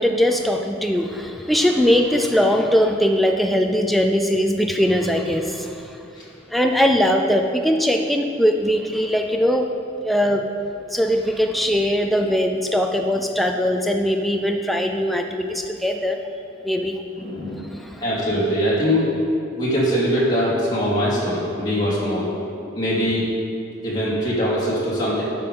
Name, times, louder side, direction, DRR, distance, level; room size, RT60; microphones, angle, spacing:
voice 1, 0.0-6.0 6.5-9.7 10.0-10.5 10.9-16.2 16.6-17.0 17.6-18.0, equal, ahead, 2 dB, 0.4 m, -20 dB
voice 2, 17.2-17.7 18.0-19.1 19.6-22.3 22.7-23.3 23.8-25.2, equal, 20° left, -8 dB, 2.6 m, -22 dB
12.0 x 5.3 x 5.5 m, 2.6 s
head